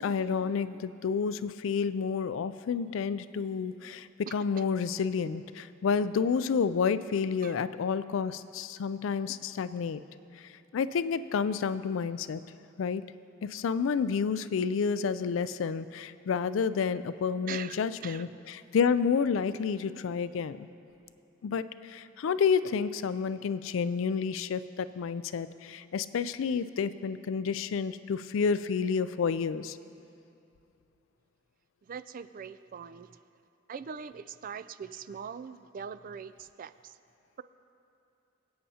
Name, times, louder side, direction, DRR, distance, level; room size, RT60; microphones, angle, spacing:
voice 1, 0.0-10.0 10.7-12.4 12.8-13.0 13.4-20.7 21.4-29.8, left 6 dB, 70° left, 14 dB, 0.4 m, -30 dB
voice 2, 17.5-18.2 31.9-33.1 33.7-37.0, right 7 dB, 45° right, 14 dB, 0.3 m, -42 dB
24.0 x 8.6 x 2.8 m, 2.7 s
head